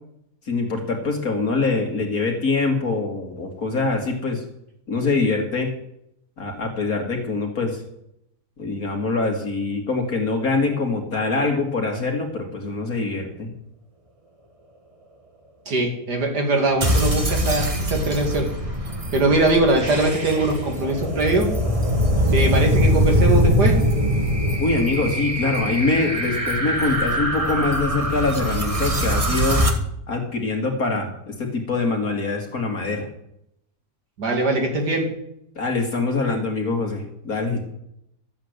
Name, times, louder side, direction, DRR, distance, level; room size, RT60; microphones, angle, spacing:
voice 1, 0.5-4.4 4.9-5.7 6.4-7.8 8.6-13.5 24.6-29.6 30.1-33.1 35.6-37.6, left 3 dB, 60° left, 2 dB, 2.5 m, -24 dB
voice 2, 15.7-18.5 19.1-21.5 22.3-23.8 34.2-35.0, right 2 dB, 90° right, 2 dB, 3.1 m, -21 dB
sound 1, 16.8-29.7, equal, 20° right, 1.4 m, -22 dB
13.5 x 8.2 x 7.9 m, 0.78 s
omnidirectional pair, 1.7 m